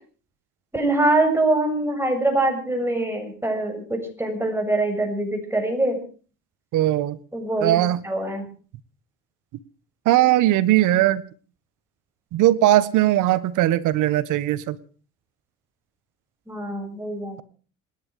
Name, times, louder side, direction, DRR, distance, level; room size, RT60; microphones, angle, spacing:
voice 1, 0.7-6.0 7.3-7.8 8.0-8.5 16.5-17.4, right 2 dB, 10° right, 6.8 m, -23 dB
voice 2, 6.7-7.2 7.6-8.0 10.0-11.2 12.3-14.8, right 14 dB, 75° right, 1.6 m, -19 dB
27.0 x 11.0 x 4.9 m
cardioid pair, 95°, 31 cm